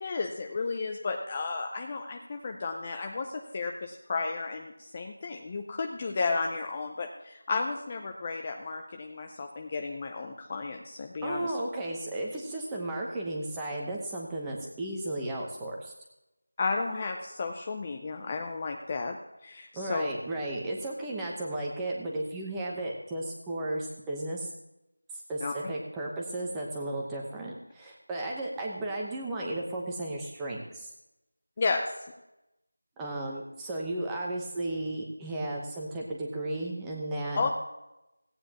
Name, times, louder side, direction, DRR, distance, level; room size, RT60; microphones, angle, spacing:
voice 1, 0.0-11.5 16.6-19.2 19.4-20.1 25.4-25.7 31.6-31.9 37.4-37.5, left 4 dB, 20° left, 4 dB, 0.6 m, -33 dB
voice 2, 11.2-15.9 19.7-24.5 25.3-30.9 33.0-37.4, right 1 dB, 5° right, -2 dB, 0.9 m, -34 dB
17.0 x 9.4 x 2.9 m, 0.90 s
figure-of-eight pair, 175°, 0 cm